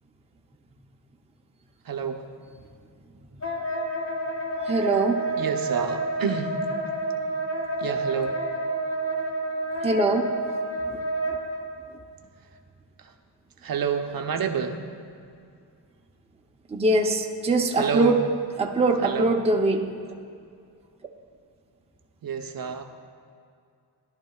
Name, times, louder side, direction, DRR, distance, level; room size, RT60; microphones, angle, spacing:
voice 1, 1.8-2.2 5.4-6.6 7.8-8.4 13.0-13.1 13.6-14.8 17.7-18.1 19.0-19.3 22.2-22.8, right 6 dB, 50° right, 5 dB, 0.8 m, -28 dB
Wind instrument woodwind instrument, 3.4-11.6, right 2 dB, 35° left, 2.2 m, -29 dB
voice 2, 4.6-5.3 9.8-10.4 10.8-11.0 16.7-18.3 18.6-19.9, right 2 dB, 15° right, 2 dB, 0.7 m, -23 dB
16.5 x 11.5 x 2.4 m, 2.4 s
cardioid pair, 115°, 43 cm